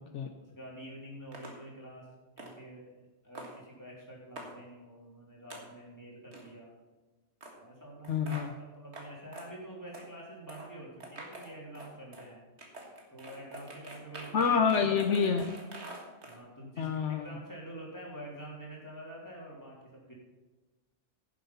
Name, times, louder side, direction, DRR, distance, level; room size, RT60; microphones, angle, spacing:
voice 1, 0.4-2.1 2.4-2.9 3.2-6.7 7.5-12.4 13.1-14.5 16.2-20.1, right 1 dB, 15° left, -4 dB, 3.3 m, -47 dB
sound 1, 1.3-1.5 2.4-2.5 3.3-3.5 4.4-4.5 5.5-5.6 6.3-6.5 7.4-7.5 8.0-8.5 8.9-9.1 9.3-9.5 9.9-10.1 10.5-10.7 11.0-12.3 12.6-16.4, right 2 dB, 60° right, 2.1 m, -46 dB
voice 2, 8.1-8.5 14.3-15.5 16.8-17.3, left 6 dB, 75° left, 5 dB, 1.1 m, -27 dB
11.0 x 7.4 x 5.6 m, 1.2 s
omnidirectional pair, 1.3 m